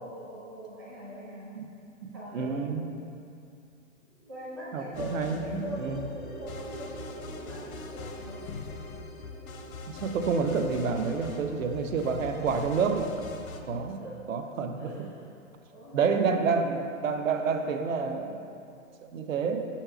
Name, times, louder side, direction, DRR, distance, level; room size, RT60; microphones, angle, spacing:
voice 1, 0.0-1.6 2.1-2.8 4.3-8.4 11.7-11.8 14.0-14.1 14.8-15.2 15.6-16.7, equal, 15° right, -10 dB, 0.5 m, -42 dB
voice 2, 2.1-2.9 4.7-6.0 9.9-13.1 13.7-15.1 15.9-18.4 19.1-19.6, right 5 dB, 70° right, 6 dB, 0.7 m, -29 dB
sound 1, 4.0-12.2, right 3 dB, 45° right, 0.8 m, -48 dB
sound 2, 4.9-13.6, left 4 dB, 90° left, 0.8 m, -42 dB
5.6 x 4.4 x 5.8 m, 2.5 s
hypercardioid pair, 175°, 41 cm